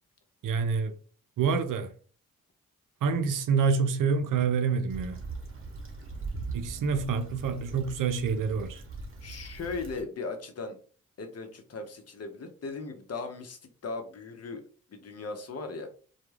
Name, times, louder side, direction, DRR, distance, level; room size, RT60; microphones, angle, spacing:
voice 1, 0.4-0.9 1.4-1.9 3.0-5.2 6.5-8.8, right 5 dB, 65° right, 0.6 m, -27 dB
Stream / Traffic noise roadway noise / Trickle dribble, 4.9-10.0, right 3 dB, 40° right, 1.0 m, -40 dB
voice 2, 9.2-10.8 11.2-14.6 14.9-15.9, left 3 dB, 45° left, 0.8 m, -38 dB
2.2 x 2.2 x 3.2 m
supercardioid pair, 40°, 35 cm